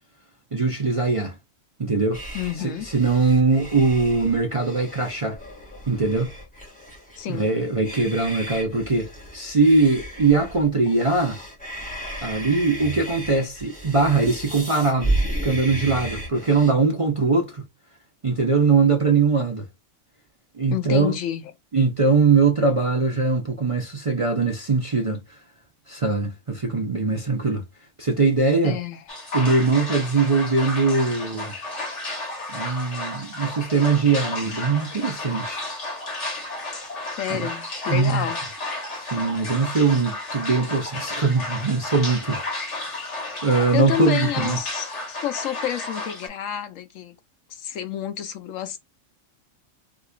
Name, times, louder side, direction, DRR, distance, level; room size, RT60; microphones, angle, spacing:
voice 1, 0.5-1.4 1.8-2.2 2.6-5.4 5.9-6.3 7.3-11.4 12.2-17.6 18.2-19.6 20.5-21.1 21.7-25.4 25.9-27.6 28.0-28.8 29.3-31.5 32.5-35.7 37.3-37.5 37.9-38.3 38.9-43.1 43.4-44.6, right 4 dB, 40° right, 0.5 m, -21 dB
sound 1, 2.1-16.7, right 1 dB, 5° left, 1.3 m, -33 dB
voice 2, 2.3-2.9 7.2-7.5 20.7-21.5 28.6-29.0 37.2-38.4 43.7-47.1 47.5-48.8, left 10 dB, 75° left, 1.0 m, -29 dB
sound 2, 29.1-46.3, left 2 dB, 60° left, 1.4 m, -32 dB
3.8 x 2.9 x 2.3 m
omnidirectional pair, 1.4 m